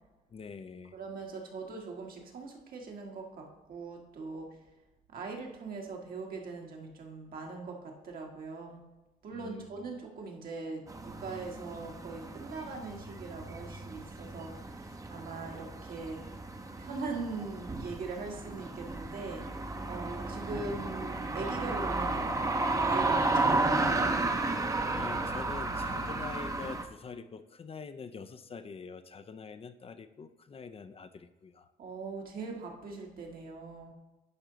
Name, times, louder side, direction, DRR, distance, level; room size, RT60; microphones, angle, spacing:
voice 1, 0.3-1.0 9.3-9.7 24.9-31.7, left 5 dB, 35° left, 10 dB, 0.5 m, -45 dB
voice 2, 0.9-4.5 5.1-8.8 9.2-16.2 16.8-19.5 19.9-22.4 22.7-24.1 31.8-33.9, right 4 dB, 65° right, 0 dB, 1.7 m, -41 dB
sound 1, 10.9-26.8, right 2 dB, 20° right, 0.8 m, -33 dB
10.5 x 4.5 x 3.9 m, 1.1 s
cardioid pair, 80°, 16 cm